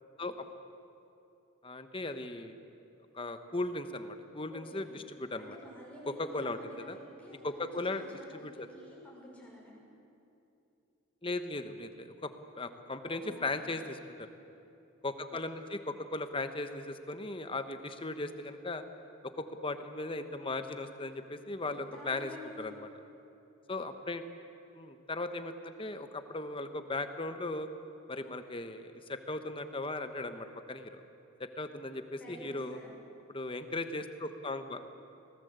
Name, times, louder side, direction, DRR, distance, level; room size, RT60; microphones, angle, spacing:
voice 1, 1.6-2.5 3.1-5.6 6.2-7.0 7.4-8.0 8.3-8.7 11.2-12.3 12.6-14.0 15.0-18.8 19.2-19.3 19.6-22.3 22.6-22.7 23.7-24.2 24.8-27.7 28.1-31.0 31.4-32.8 33.3-34.8, left 2 dB, 25° left, 8 dB, 1.2 m, -37 dB
voice 2, 4.5-4.9 5.4-9.8 13.0-13.7 21.6-22.7 32.1-32.9, left 1 dB, 5° left, -4 dB, 6.4 m, -50 dB
25.0 x 18.5 x 8.2 m, 2.7 s
head